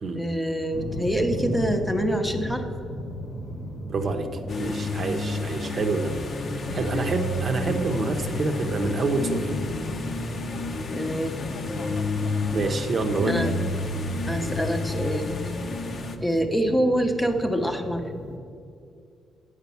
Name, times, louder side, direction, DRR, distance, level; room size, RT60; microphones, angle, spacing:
voice 1, 0.1-2.6 6.4-7.1 7.6-7.8 10.9-11.4 13.3-13.5 14.3-15.4 16.2-18.0, right 1 dB, 10° left, 4 dB, 0.8 m, -26 dB
sound 1, 0.7-18.4, left 1 dB, 70° left, 1.1 m, -37 dB
voice 2, 3.9-4.3 4.6-6.1 6.7-9.6 12.5-13.4, right 3 dB, 45° right, 5 dB, 0.8 m, -27 dB
sound 2, 4.5-16.2, left 2 dB, 50° left, 0.7 m, -30 dB
8.0 x 5.1 x 6.9 m, 2.5 s
cardioid pair, 90°, 0 cm